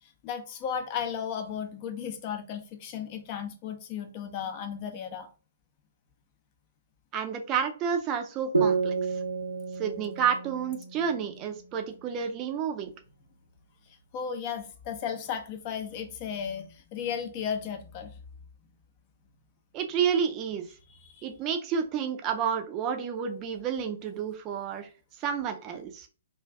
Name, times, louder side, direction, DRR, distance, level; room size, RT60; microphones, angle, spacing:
voice 1, 0.0-5.3 13.9-18.2 20.9-21.3, left 7 dB, 35° left, 0.6 m, -35 dB
voice 2, 7.1-9.0 9.8-12.9 19.7-20.7 21.2-24.9 25.2-26.1, right 7 dB, 30° right, 0.5 m, -30 dB
sound 1, 8.5-12.0, right 4 dB, 90° right, 0.6 m, -31 dB
2.5 x 2.3 x 3.3 m
figure-of-eight pair, 120°, 0 cm